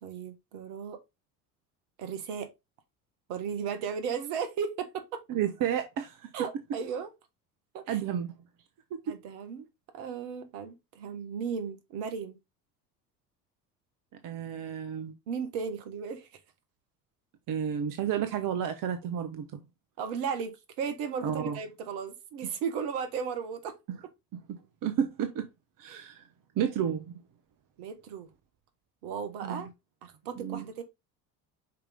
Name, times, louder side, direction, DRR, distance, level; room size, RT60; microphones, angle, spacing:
voice 1, 0.0-1.0 2.0-2.5 3.3-5.2 6.3-7.1 7.7-8.0 9.1-9.7 9.9-12.4 15.3-16.3 20.0-23.8 25.9-26.0 27.8-28.3 29.0-29.7 30.0-30.8, right 6 dB, 60° right, 1.6 m, -35 dB
voice 2, 5.3-6.3 7.9-8.3 8.9-9.0 14.2-15.1 17.5-19.4 21.2-21.6 22.4-22.5 23.9-24.0 24.3-25.5 25.8-26.2 26.6-27.1 29.4-29.6 30.4-30.7, right 9 dB, 45° right, 1.2 m, -31 dB
5.8 x 5.0 x 3.7 m
figure-of-eight pair, 70°, 47 cm